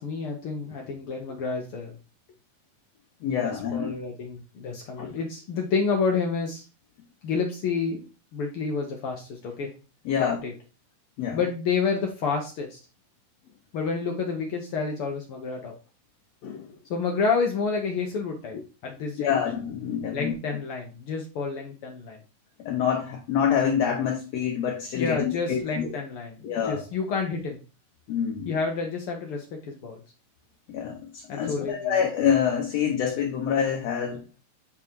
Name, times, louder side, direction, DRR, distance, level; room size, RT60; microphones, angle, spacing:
voice 1, 0.0-2.0 3.4-6.7 7.2-8.0 8.3-9.7 10.2-10.5 11.3-12.8 13.7-15.7 16.9-19.4 20.1-22.2 24.9-27.6 28.4-30.0 31.3-32.0, left 5 dB, 85° left, 1.2 m, -29 dB
voice 2, 3.2-3.9 5.0-5.1 10.0-10.4 11.2-11.4 16.4-16.7 19.2-20.3 22.6-26.0 26.4-26.8 28.1-28.5 30.7-34.2, left 8 dB, 65° left, 1.7 m, -26 dB
8.2 x 3.7 x 4.5 m
omnidirectional pair, 3.9 m